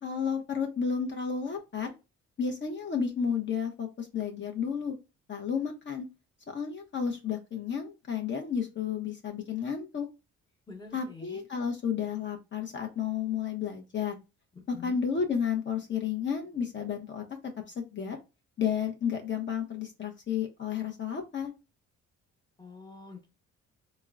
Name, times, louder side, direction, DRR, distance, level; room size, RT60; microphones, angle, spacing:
voice 1, 0.0-1.9 2.4-5.0 5.3-6.1 6.5-10.1 10.9-14.2 14.7-17.2 17.8-18.2 18.6-21.5, left 7 dB, 40° left, 2 dB, 0.6 m, -32 dB
voice 2, 10.7-11.4 14.5-15.0 22.6-23.3, left 4 dB, 15° left, 2 dB, 0.9 m, -46 dB
3.6 x 2.1 x 2.3 m, 0.27 s
cardioid pair, 90°, 30 cm